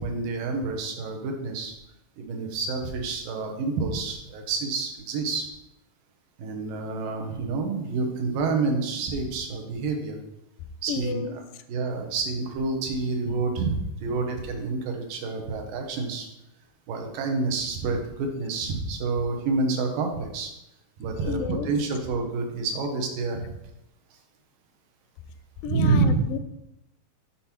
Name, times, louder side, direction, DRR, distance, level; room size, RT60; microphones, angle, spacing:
voice 1, 0.0-1.7 2.2-5.5 6.4-10.2 10.8-11.3 11.7-16.3 16.9-20.5 21.0-23.5 25.7-26.2, right 3 dB, 85° right, 3 dB, 2.8 m, -28 dB
voice 2, 10.9-11.3 21.3-21.7 25.6-26.4, left 6 dB, 85° left, 10 dB, 2.2 m, -31 dB
7.3 x 4.2 x 5.9 m, 0.87 s
omnidirectional pair, 3.8 m